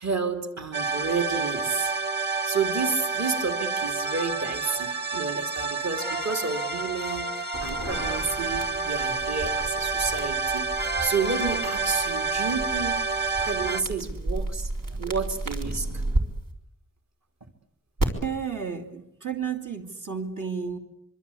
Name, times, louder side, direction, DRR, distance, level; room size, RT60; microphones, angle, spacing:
voice 1, 0.0-1.9 2.2-15.9, right 4 dB, 60° right, 6 dB, 2.6 m, -31 dB
sound 1, 0.7-13.8, right 4 dB, 35° right, 1.6 m, -29 dB
sound 2, 7.5-16.2 18.0-18.1, right 1 dB, 90° right, 4.0 m, -33 dB
voice 2, 18.2-20.8, right 6 dB, 75° right, 2 dB, 2.6 m, -32 dB
25.5 x 24.0 x 8.4 m, 0.83 s
wide cardioid pair, 90°, 31 cm